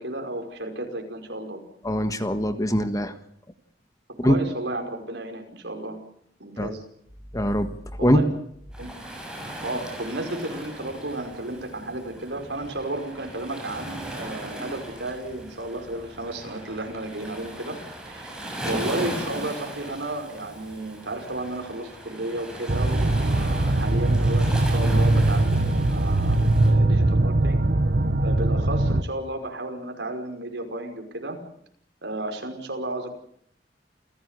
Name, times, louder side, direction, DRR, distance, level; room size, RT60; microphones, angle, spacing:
voice 1, 0.0-1.6 4.2-6.0 6.4-6.8 8.0-8.3 8.8-8.9 9.6-17.8 18.1-18.4 18.6-27.6 28.2-31.4 32.0-33.2, right 1 dB, 75° right, 4 dB, 5.3 m, -33 dB
voice 2, 1.8-3.1 4.2-4.4 6.6-6.7 7.3-7.7 8.0-8.2, equal, 20° left, 9 dB, 1.6 m, -22 dB
Waves surf, 8.7-26.7, right 1 dB, 5° right, 7.2 m, -38 dB
sound 1, 22.7-29.0, right 2 dB, 60° right, 1.2 m, -21 dB
29.0 x 16.0 x 8.2 m, 0.69 s
head